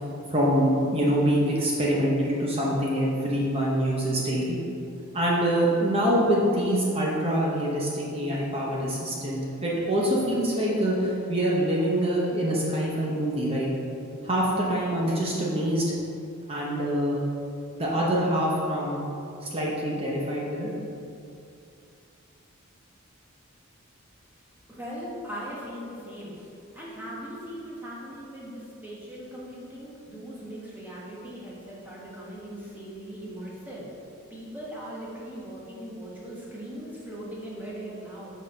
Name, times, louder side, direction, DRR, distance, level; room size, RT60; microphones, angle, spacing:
voice 1, 0.3-4.6 5.1-13.7 14.2-15.9 16.5-17.2 17.8-19.0 19.4-20.7, equal, 25° right, -5 dB, 0.9 m, -25 dB
voice 2, 24.7-26.5 26.7-33.9 34.3-38.3, equal, 10° right, -6 dB, 1.2 m, -39 dB
6.2 x 4.1 x 5.3 m, 2.6 s
head